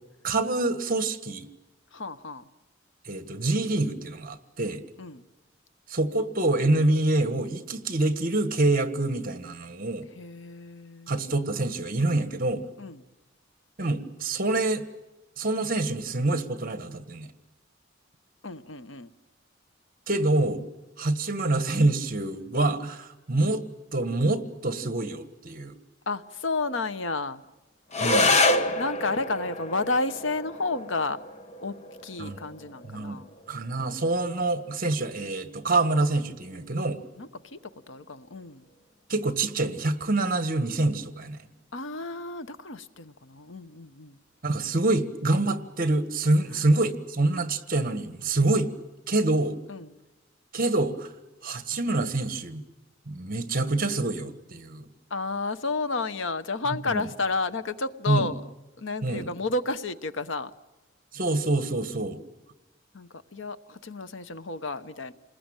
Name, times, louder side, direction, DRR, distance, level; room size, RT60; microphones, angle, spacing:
voice 1, 0.2-1.5 3.1-4.8 5.9-10.1 11.1-12.6 13.8-14.8 15.4-17.3 20.1-20.6 21.0-23.6 23.9-25.7 28.0-28.4 32.2-32.4 32.8-33.2 33.5-37.0 39.1-41.4 44.4-48.7 49.1-49.6 50.5-51.1 51.4-52.6 53.1-54.9 56.9-57.0 58.1-58.3 59.0-59.3 61.1-62.2, right 2 dB, 45° right, 1.6 m, -26 dB
voice 2, 1.9-2.4 5.0-5.2 10.1-11.2 12.8-13.0 18.4-19.1 26.1-27.4 28.8-31.2 31.6-31.7 32.0-33.3 37.2-37.6 37.9-38.6 41.7-44.2 49.7-49.9 55.1-58.4 58.8-60.5 62.9-65.1, left 3 dB, 70° left, 1.0 m, -31 dB
sound 1, 27.9-36.9, left 2 dB, 35° left, 1.3 m, -29 dB
28.5 x 20.5 x 9.0 m
head